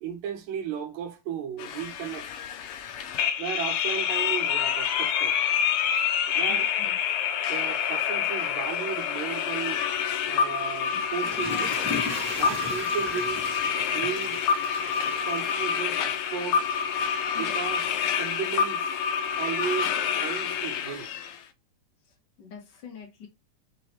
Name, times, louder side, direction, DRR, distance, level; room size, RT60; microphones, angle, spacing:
voice 1, 0.0-2.3 3.4-5.4 6.3-6.7 7.5-9.8 10.3-11.7 12.2-13.5 13.9-14.4 15.2-16.7 17.3-19.0 19.4-21.1, right 8 dB, 75° right, 2.3 m, -35 dB
sound 1, 1.6-21.4, left 8 dB, 80° left, 1.2 m, -27 dB
voice 2, 6.5-7.0 17.3-17.6 22.4-23.3, left 6 dB, 45° left, 1.9 m, -44 dB
Water / Toilet flush, 10.9-16.2 16.7-16.8, left 1 dB, 5° right, 1.1 m, -37 dB
5.3 x 2.9 x 2.9 m
omnidirectional pair, 3.4 m